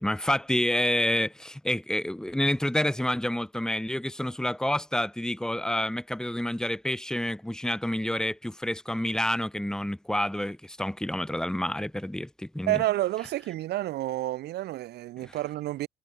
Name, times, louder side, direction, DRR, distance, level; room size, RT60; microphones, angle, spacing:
voice 1, 0.0-12.8 15.2-15.4, left 1 dB, 5° left, 6.6 m, -28 dB
voice 2, 12.7-15.9, right 15 dB, 75° right, 4.6 m, -29 dB
cardioid pair, 110°, 17 cm